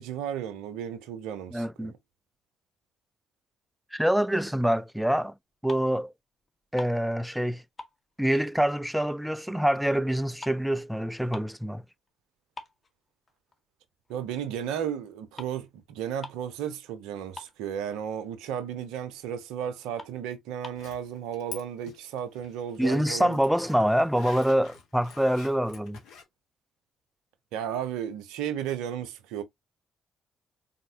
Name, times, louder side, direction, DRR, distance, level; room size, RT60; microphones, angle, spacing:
voice 1, 0.0-1.9 14.1-23.4 27.5-29.4, right 9 dB, 70° right, 0.8 m, -34 dB
voice 2, 1.5-1.9 3.9-5.3 5.6-6.1 6.7-7.6 8.2-11.8 22.8-26.0, equal, 5° right, 0.5 m, -25 dB
sound 1, 5.4-6.1 6.4-7.5 7.8-9.3 9.6-11.7 12.1-12.2 12.6-13.6 14.1-14.3 15.1-15.2 15.4-15.6 15.9-16.0 16.2-16.6 16.9-17.0 17.2-18.0 18.4-18.5 19.0-19.1 19.5-19.6 19.9-20.9, left 3 dB, 35° left, 1.5 m, -46 dB
Zipper (clothing), 20.8-21.6 21.9-26.2, left 6 dB, 65° left, 1.4 m, -47 dB
4.3 x 3.9 x 2.8 m
figure-of-eight pair, 45°, 0 cm